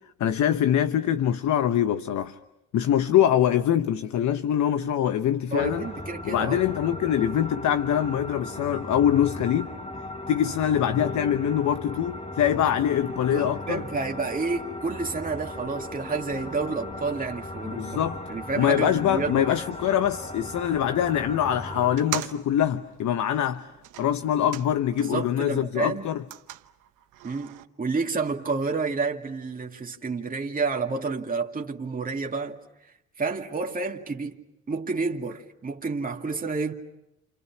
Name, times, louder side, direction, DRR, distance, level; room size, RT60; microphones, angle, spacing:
voice 1, 0.2-2.4 2.7-5.9 6.3-9.7 10.3-13.8 17.6-18.2 18.5-23.7 24.0-26.2, left 10 dB, 70° left, 1.0 m, -24 dB
voice 2, 5.5-6.6 13.3-18.0 18.3-19.4 25.0-26.1 27.2-34.4 34.7-36.7, right 4 dB, 30° right, 2.3 m, -30 dB
sound 1, 5.6-22.0, left 1 dB, 20° left, 1.8 m, -37 dB
sound 2, 21.9-25.3 25.6-27.6, right 13 dB, 90° right, 1.1 m, -40 dB
29.0 x 28.5 x 6.1 m
cardioid pair, 90°, 30 cm